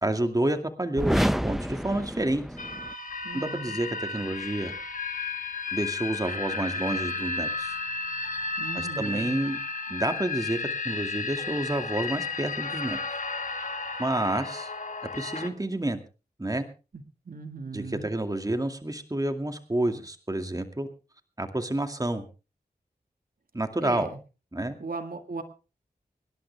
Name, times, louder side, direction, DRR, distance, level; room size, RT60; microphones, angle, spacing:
voice 1, 0.0-2.4 3.3-4.7 5.7-7.8 8.7-9.6 9.9-10.6 10.8-13.2 14.0-14.7 15.1-16.0 16.4-16.6 17.7-20.9 21.4-22.2 23.5-24.1 24.5-24.7, right 1 dB, 20° right, 6 dB, 2.3 m, -29 dB
sound 1, 0.9-3.0, equal, ahead, 0.7 m, -28 dB
sound 2, 2.6-15.5, left 4 dB, 55° left, 2.0 m, -33 dB
voice 2, 3.2-3.8 8.6-9.3 17.3-18.1 23.8-24.2 24.8-25.4, right 3 dB, 60° right, 6 dB, 1.9 m, -38 dB
24.5 x 11.5 x 3.4 m, 0.34 s
cardioid pair, 45°, 16 cm